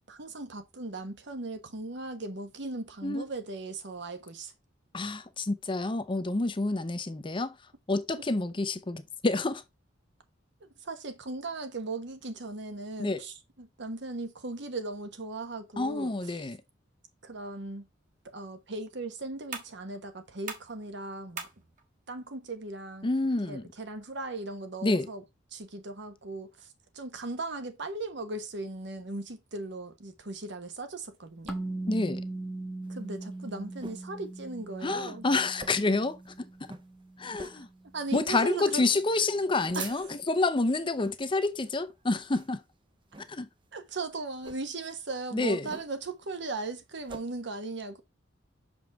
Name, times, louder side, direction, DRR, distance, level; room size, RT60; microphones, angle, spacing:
voice 1, 0.1-4.5 10.6-16.5 17.2-17.9 18.2-21.5 22.1-23.1 23.5-25.2 25.5-31.6 32.9-35.3 37.9-38.8 39.7-40.2 43.7-48.0, right 2 dB, 65° right, 1.1 m, -38 dB
voice 2, 4.9-7.5 7.9-9.6 13.0-13.2 15.8-16.6 23.0-23.6 24.8-25.1 31.9-32.2 34.8-36.2 37.2-37.7 38.1-42.6 43.3-43.5 45.3-45.7, left 2 dB, 25° left, 0.6 m, -28 dB
sound 1, 18.0-25.0, right 5 dB, 40° right, 1.5 m, -48 dB
sound 2, 31.5-38.0, right 2 dB, ahead, 1.1 m, -40 dB
sound 3, 32.9-34.1 34.5-34.6 34.8-35.1 35.5-36.0 36.3-36.4 36.6-36.9 37.3-37.7 38.1-38.4 38.8-39.0 39.4-40.3 40.9-41.2 41.6-41.9 42.3-42.7 43.1-43.3 44.3-44.6 45.7-46.1 46.5-47.2, right 3 dB, 25° right, 0.7 m, -44 dB
6.2 x 5.2 x 3.5 m
head